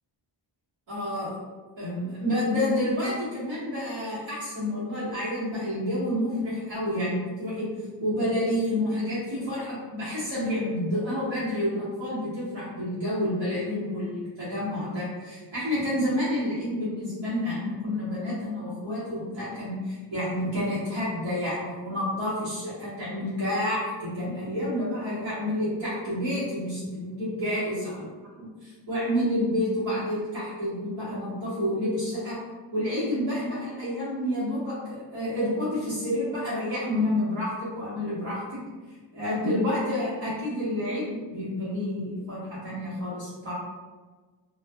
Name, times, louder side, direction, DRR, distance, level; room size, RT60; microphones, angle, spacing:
voice 1, 0.9-1.4 1.8-7.7 8.0-28.1 28.4-32.4 32.7-38.6 39.1-43.5, left 1 dB, 75° right, -11 dB, 1.1 m, -29 dB
2.5 x 2.4 x 2.3 m, 1.3 s
wide cardioid pair, 80°, 45 cm